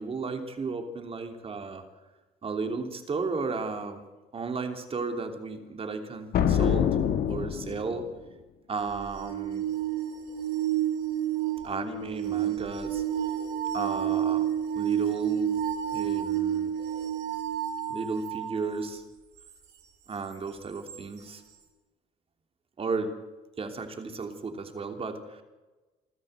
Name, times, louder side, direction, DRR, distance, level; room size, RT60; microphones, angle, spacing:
voice 1, 0.0-1.8 2.4-4.0 4.3-6.9 7.3-8.1 8.7-9.6 11.6-13.0 13.7-14.4 14.7-15.6 15.9-16.7 17.9-19.0 20.1-21.4 22.8-23.1 23.6-25.4, right 4 dB, 35° right, 6 dB, 3.1 m, -34 dB
sound 1, 6.3-8.1, left 8 dB, 65° left, 1.8 m, -25 dB
sound 2, 8.8-18.6 20.9-21.0, right 10 dB, 75° right, 4.7 m, -30 dB
25.0 x 13.5 x 8.2 m, 1.2 s
cardioid pair, 110°, 17 cm